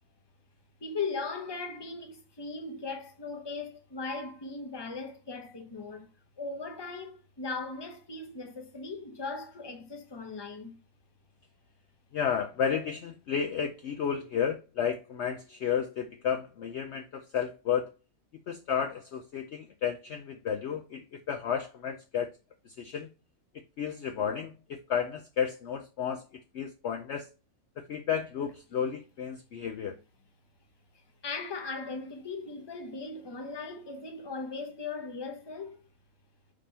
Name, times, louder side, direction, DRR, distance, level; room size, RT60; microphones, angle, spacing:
voice 1, 0.8-6.1 6.4-10.7 31.2-35.8, left 4 dB, 20° left, 0.9 m, -38 dB
voice 2, 12.1-17.9 18.5-22.3 22.7-23.1 23.8-27.3 27.8-30.0, left 7 dB, 65° left, 0.8 m, -32 dB
5.1 x 3.4 x 5.5 m
omnidirectional pair, 1.5 m